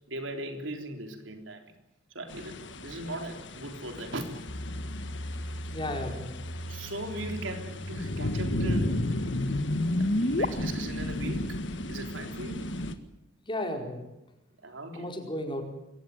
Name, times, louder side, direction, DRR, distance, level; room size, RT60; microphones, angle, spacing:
voice 1, 0.1-1.7 2.1-4.3 5.5-5.6 6.7-9.2 10.0-11.6 11.9-12.7 14.6-15.1, right 1 dB, 85° right, 5 dB, 3.7 m, -39 dB
sound 1, 2.3-13.0, left 1 dB, 70° left, 1.8 m, -35 dB
sound 2, 4.5-10.5, left 1 dB, 50° left, 1.4 m, -33 dB
voice 2, 5.7-6.4 13.5-14.0 14.9-15.6, left 1 dB, 25° left, 3 dB, 4.6 m, -34 dB
23.0 x 18.0 x 9.4 m, 0.93 s
head